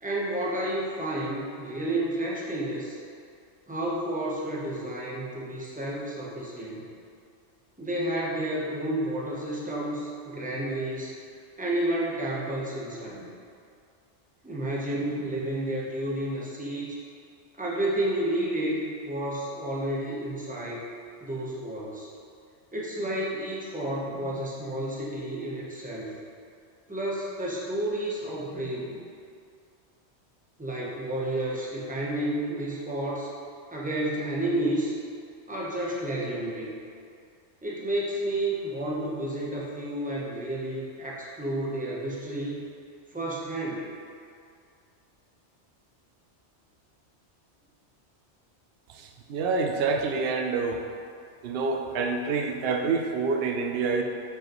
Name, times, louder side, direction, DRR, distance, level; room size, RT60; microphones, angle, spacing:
voice 1, 0.0-3.0 3.7-6.9 7.8-11.1 11.6-13.3 14.4-17.0 17.6-20.9 21.2-22.1 22.7-26.1 26.9-29.0 30.6-33.3 33.7-34.9 35.5-36.7 37.6-42.6 43.1-43.9, right 1 dB, 10° right, -5 dB, 0.8 m, -31 dB
voice 2, 48.9-50.8 51.4-54.0, right 4 dB, 60° right, 3 dB, 0.8 m, -27 dB
6.9 x 5.1 x 3.0 m, 2.3 s
omnidirectional pair, 1.2 m